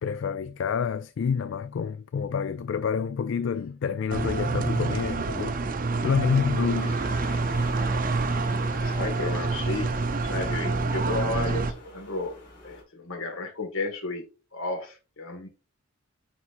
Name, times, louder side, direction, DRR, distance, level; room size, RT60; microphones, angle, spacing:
voice 1, 0.0-5.6 6.0-7.0, left 6 dB, 60° left, 0.3 m, -28 dB
sound 1, 4.1-11.7, right 3 dB, 40° right, 0.5 m, -27 dB
sound 2, 6.8-12.8, left 1 dB, 40° left, 3.6 m, -44 dB
voice 2, 8.4-9.9 10.2-12.4 12.6-14.2 14.5-15.5, left 2 dB, 75° left, 1.8 m, -33 dB
9.1 x 4.2 x 2.5 m
head